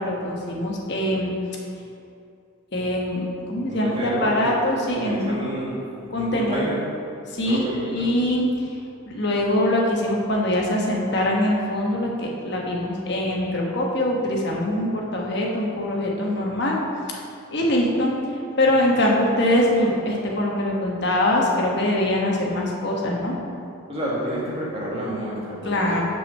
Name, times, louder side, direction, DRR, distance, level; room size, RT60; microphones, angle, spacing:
voice 1, 0.0-1.3 2.7-5.4 6.1-6.7 7.3-7.6 7.9-8.5 9.1-16.8 17.5-18.1 18.6-23.4 25.6-26.0, left 1 dB, 50° left, -1 dB, 1.1 m, -23 dB
voice 2, 3.7-4.5 5.0-5.8 6.1-6.8 7.4-8.1 23.9-26.0, right 1 dB, 25° right, -6 dB, 1.7 m, -29 dB
5.8 x 4.9 x 6.4 m, 2.5 s
head